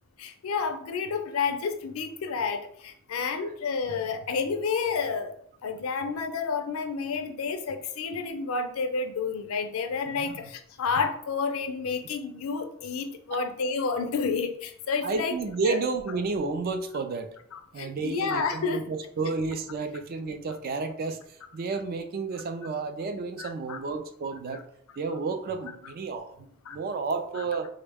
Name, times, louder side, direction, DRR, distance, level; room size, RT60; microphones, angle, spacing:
voice 1, 0.2-5.3 5.6-15.3 15.6-15.8 17.5-18.8 23.4-23.8 26.7-26.8, left 5 dB, 70° left, 7 dB, 0.4 m, -30 dB
voice 2, 10.1-10.4 13.3-13.4 15.0-17.3 17.7-21.2 21.5-24.6 25.0-27.7, right 4 dB, 45° right, 7 dB, 0.3 m, -31 dB
3.6 x 2.1 x 3.4 m, 0.66 s
head